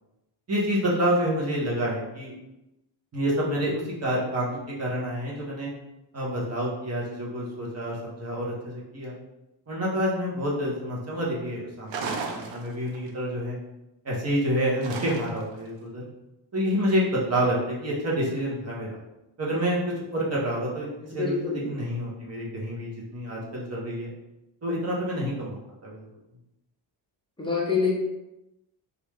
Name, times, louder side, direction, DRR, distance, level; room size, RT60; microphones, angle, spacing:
voice 1, 0.5-2.3 3.1-5.7 6.1-9.1 9.7-13.6 14.0-16.0 16.5-18.9 19.4-19.8 20.1-24.1 24.6-26.0, equal, 30° right, -5 dB, 1.1 m, -28 dB
sound 1, 11.9-13.1 14.8-15.6, right 4 dB, 65° right, 0.6 m, -34 dB
voice 2, 21.1-21.7 27.4-27.9, left 5 dB, 10° left, -4 dB, 0.7 m, -26 dB
3.1 x 2.6 x 3.5 m, 0.94 s
cardioid pair, 145°, 48 cm